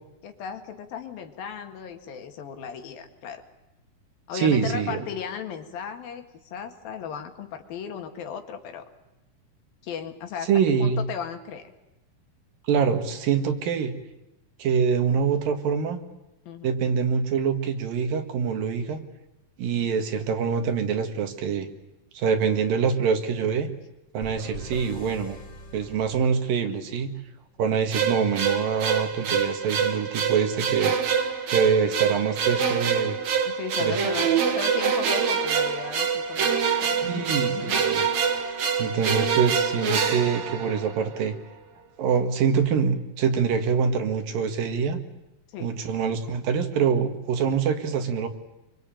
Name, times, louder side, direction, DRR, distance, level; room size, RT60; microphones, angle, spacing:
voice 1, 0.2-3.4 4.3-8.9 9.8-10.5 10.8-11.7 16.5-16.7 33.4-37.9 45.5-45.7, left 7 dB, 80° left, 6 dB, 3.7 m, -36 dB
voice 2, 4.3-5.0 10.5-11.0 12.7-13.9 14.6-16.0 16.6-19.0 19.6-21.7 22.2-23.7 24.1-25.4 25.7-27.1 27.6-31.0 31.5-33.2 33.8-34.0 37.0-38.1 38.8-41.4 42.0-45.0 45.6-48.3, right 6 dB, 75° right, 7 dB, 3.5 m, -25 dB
sound 1, 24.2-27.0, equal, 25° left, 3.7 m, -43 dB
sound 2, 27.9-41.2, right 6 dB, 55° right, 2.8 m, -25 dB
25.5 x 24.0 x 9.1 m, 0.96 s
omnidirectional pair, 4.1 m